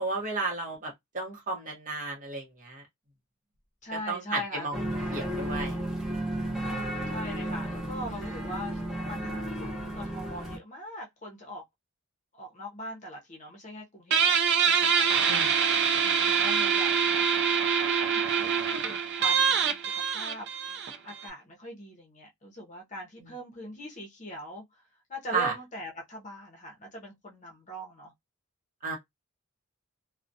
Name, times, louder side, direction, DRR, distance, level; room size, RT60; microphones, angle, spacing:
voice 1, 0.0-2.8 4.1-4.7 5.1-5.8 15.3-15.4 25.3-25.5 28.8-29.0, right 3 dB, 40° right, 0.8 m, -32 dB
voice 2, 3.8-4.7 6.5-8.8 9.1-11.6 12.3-14.3 14.6-17.2 17.9-19.8 20.1-20.5 21.0-24.8 25.1-28.1, equal, 35° left, 0.7 m, -41 dB
sound 1, 4.7-10.6, right 1 dB, ahead, 0.7 m, -33 dB
Guitar, 14.1-21.3, right 7 dB, 55° right, 0.4 m, -25 dB
2.3 x 2.1 x 2.6 m
head